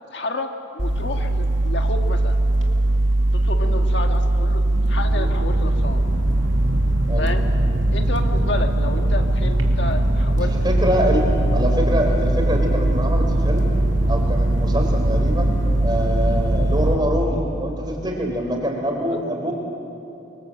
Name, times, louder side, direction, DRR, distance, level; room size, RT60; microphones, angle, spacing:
voice 1, 0.1-2.4 3.3-4.6 4.9-6.0 7.2-7.4 7.9-10.8, left 2 dB, 65° left, 4 dB, 1.7 m, -30 dB
sound 1, 0.8-17.0, right 1 dB, 90° right, 2.5 m, -20 dB
voice 2, 10.4-13.7 14.1-15.5 15.8-19.5, equal, 20° right, 2 dB, 3.9 m, -25 dB
24.5 x 24.0 x 7.8 m, 2.9 s
head